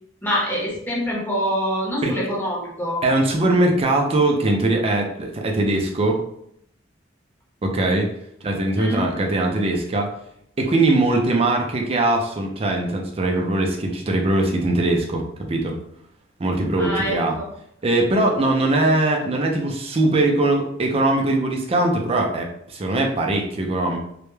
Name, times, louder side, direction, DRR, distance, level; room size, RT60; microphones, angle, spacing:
voice 1, 0.2-3.0 8.8-9.1 16.8-17.5, equal, 10° left, -5 dB, 0.7 m, -25 dB
voice 2, 3.0-6.2 7.6-8.1 8.4-10.1 10.6-15.8 16.4-17.4 17.8-24.0, right 2 dB, 30° right, 1 dB, 0.4 m, -21 dB
2.2 x 2.0 x 3.0 m, 0.72 s
head